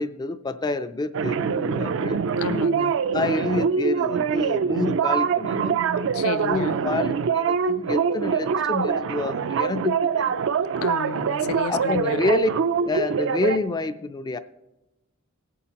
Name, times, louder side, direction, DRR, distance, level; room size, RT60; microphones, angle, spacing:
voice 1, 0.0-2.2 3.1-5.8 6.4-10.3 11.7-12.5 12.8-14.4, left 3 dB, 20° left, 0.3 m, -28 dB
sound 1, 1.1-13.6, right 6 dB, 65° right, 0.4 m, -24 dB
voice 2, 2.4-3.0 6.0-6.8 10.8-12.2, left 6 dB, 80° left, 0.4 m, -31 dB
18.5 x 8.4 x 2.9 m
head